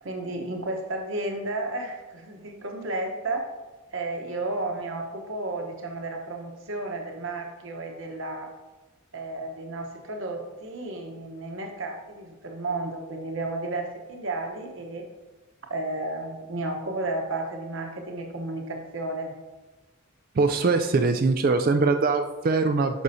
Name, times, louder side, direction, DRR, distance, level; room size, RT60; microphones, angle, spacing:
voice 1, 0.0-3.4 3.9-8.5 9.1-15.0 15.7-19.3, right 2 dB, 60° right, 3 dB, 1.0 m, -32 dB
voice 2, 20.4-23.0, right 3 dB, 40° right, 7 dB, 0.3 m, -22 dB
9.6 x 6.2 x 2.7 m, 1.2 s
head